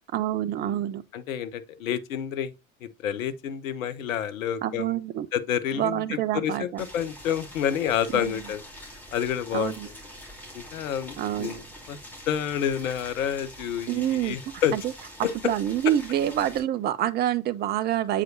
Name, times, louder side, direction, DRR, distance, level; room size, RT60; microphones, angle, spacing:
voice 1, 0.1-1.0 4.6-5.3 5.7-6.8 8.1-8.4 9.5-9.9 11.2-11.6 13.9-14.4 14.7-14.8 15.4-18.2, right 11 dB, 25° right, 0.4 m, -27 dB
voice 2, 1.1-2.5 2.8-5.0 5.3-10.0 10.5-11.6 11.9-12.0 12.3-14.8, left 9 dB, 70° left, 0.7 m, -29 dB
Boiling, 6.8-16.6, equal, 5° left, 2.5 m, -45 dB
7.5 x 4.8 x 2.6 m
figure-of-eight pair, 65°, 42 cm